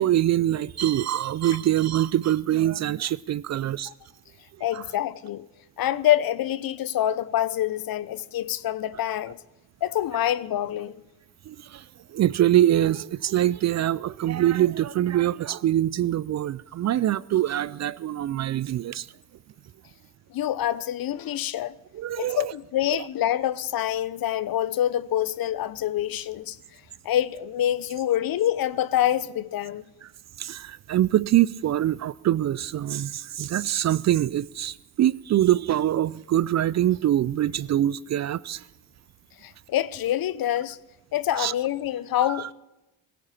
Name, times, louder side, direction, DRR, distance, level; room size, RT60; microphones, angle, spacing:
voice 1, 0.0-3.9 4.7-4.8 11.5-19.1 21.9-22.5 22.9-23.1 30.0-30.1 30.4-38.6 41.4-41.5 42.3-42.5, right 12 dB, 40° right, 0.4 m, -24 dB
voice 2, 4.6-5.5 5.8-9.4 9.8-11.0 20.3-21.8 22.2-26.6 27.0-29.8 39.4-40.8 41.1-42.5, left 12 dB, 55° left, 0.8 m, -26 dB
17.5 x 16.0 x 4.3 m
hypercardioid pair, 55°, 43 cm